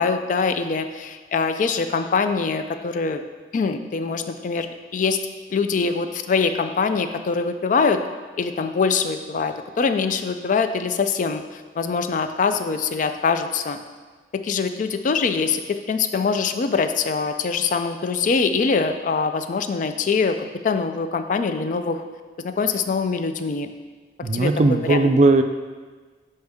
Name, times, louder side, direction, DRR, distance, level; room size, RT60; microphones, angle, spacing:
voice 1, 0.0-3.2 3.5-4.7 4.9-5.2 5.5-8.0 8.4-13.8 14.3-20.4 20.6-22.0 22.4-23.7 24.3-24.5 24.9-25.0, left 5 dB, 45° left, 8 dB, 0.3 m, -23 dB
voice 2, 24.2-25.4, right 2 dB, 40° right, 8 dB, 0.3 m, -17 dB
6.6 x 4.3 x 3.5 m, 1.4 s
head